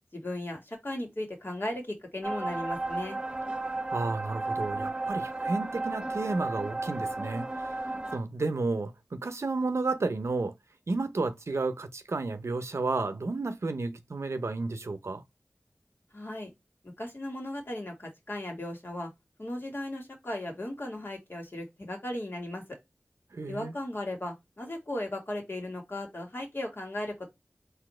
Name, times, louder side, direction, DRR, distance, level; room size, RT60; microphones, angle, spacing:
voice 1, 0.1-3.2 16.1-16.5 17.0-19.1 19.4-22.6 23.5-27.3, left 1 dB, 55° left, 1.9 m, -36 dB
sound 1, 2.2-8.2, right 2 dB, 20° right, 1.0 m, -33 dB
voice 2, 3.9-7.8 8.1-10.5 10.9-15.2 23.3-23.7, right 3 dB, 80° right, 0.6 m, -32 dB
4.2 x 2.7 x 4.3 m
wide cardioid pair, 45°, 5 cm